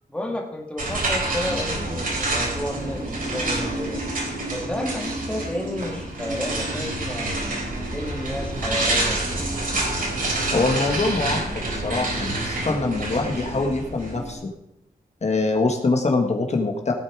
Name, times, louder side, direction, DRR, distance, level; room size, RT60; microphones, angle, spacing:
voice 1, 0.1-4.0 4.5-7.5 7.9-9.5, left 1 dB, 5° left, 1 dB, 2.0 m, -31 dB
sound 1, 0.8-14.3, right 2 dB, 65° right, 3.6 m, -27 dB
voice 2, 10.5-14.5 15.2-16.9, left 3 dB, 45° left, 2 dB, 1.6 m, -24 dB
17.0 x 8.4 x 4.8 m, 0.84 s
wide cardioid pair, 145°, 16 cm